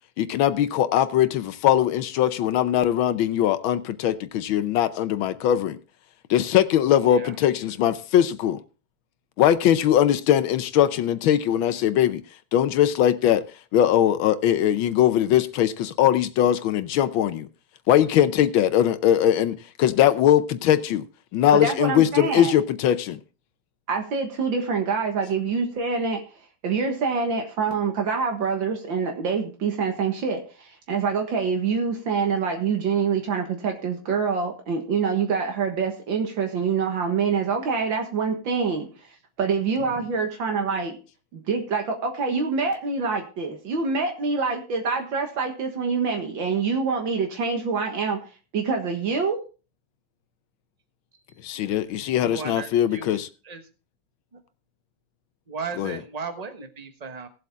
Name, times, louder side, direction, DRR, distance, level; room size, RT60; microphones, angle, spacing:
voice 1, 0.2-5.8 6.3-8.6 9.4-12.2 12.5-13.4 13.7-17.5 17.9-21.0 21.3-23.2 51.4-53.3 55.8-56.0, left 11 dB, 85° left, 1.5 m, -21 dB
voice 2, 21.5-22.6 23.9-26.2 26.6-38.9 39.4-41.0 41.3-48.2 48.5-49.4, right 5 dB, 75° right, 2.2 m, -25 dB
voice 3, 52.1-53.2 53.5-53.6 55.5-57.3, right 4 dB, 25° right, 1.1 m, -36 dB
17.0 x 7.8 x 3.6 m
omnidirectional pair, 2.1 m